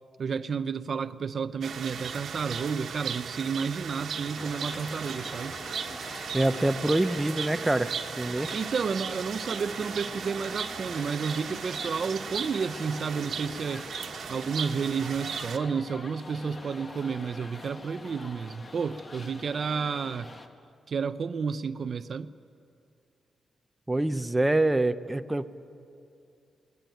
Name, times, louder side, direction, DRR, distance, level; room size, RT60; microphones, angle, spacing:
voice 1, 0.2-5.6 8.5-13.8 14.3-20.3 20.9-22.3, right 6 dB, 50° right, 12 dB, 0.6 m, -31 dB
sound 1, 1.6-15.6, right 6 dB, 70° right, 1.4 m, -37 dB
sound 2, 4.4-20.5, left 2 dB, 30° left, 1.5 m, -44 dB
voice 2, 6.3-7.9 8.2-8.5 23.9-25.6, right 2 dB, 10° right, 9 dB, 0.6 m, -25 dB
23.0 x 20.0 x 9.2 m, 2.5 s
wide cardioid pair, 125°, 0 cm